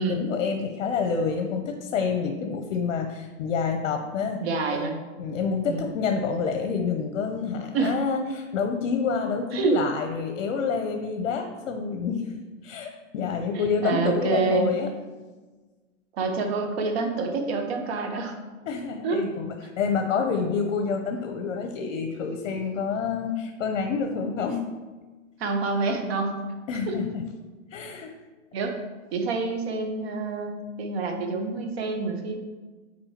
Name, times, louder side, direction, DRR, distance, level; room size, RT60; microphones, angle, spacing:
voice 1, 0.0-4.4 4.7-4.9 5.2-14.9 18.7-24.6 26.7-27.2 27.7-28.1, left 5 dB, 65° left, 5 dB, 0.8 m, -28 dB
voice 2, 4.4-5.0 5.6-5.8 7.7-8.0 9.5-9.8 13.5-14.7 16.1-18.3 19.0-19.3 25.4-26.4 26.9-27.0 28.5-28.8 29.1-30.5 30.8-32.4, right 4 dB, 55° right, 4 dB, 1.1 m, -27 dB
8.7 x 4.4 x 2.9 m, 1.3 s
hypercardioid pair, 150°, 38 cm